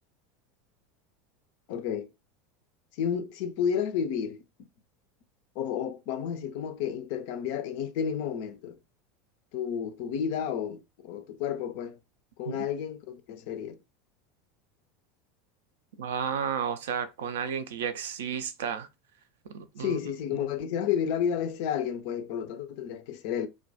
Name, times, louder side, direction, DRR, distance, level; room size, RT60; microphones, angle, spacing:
voice 1, 1.7-2.1 2.9-4.4 5.6-8.8 9.5-12.0 12.4-13.8 19.8-23.5, left 8 dB, 55° left, 0.4 m, -31 dB
voice 2, 16.0-18.9 19.5-20.0, right 7 dB, 65° right, 0.3 m, -32 dB
2.2 x 2.2 x 2.6 m
figure-of-eight pair, 80°, 0 cm